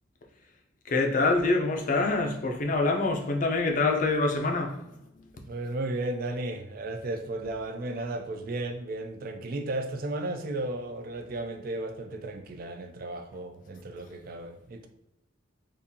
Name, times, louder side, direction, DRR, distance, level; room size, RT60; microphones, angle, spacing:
voice 1, 0.9-4.7, left 3 dB, 40° left, 0.5 m, -25 dB
voice 2, 5.5-14.9, right 2 dB, 45° right, 0.3 m, -34 dB
3.9 x 2.5 x 2.6 m
head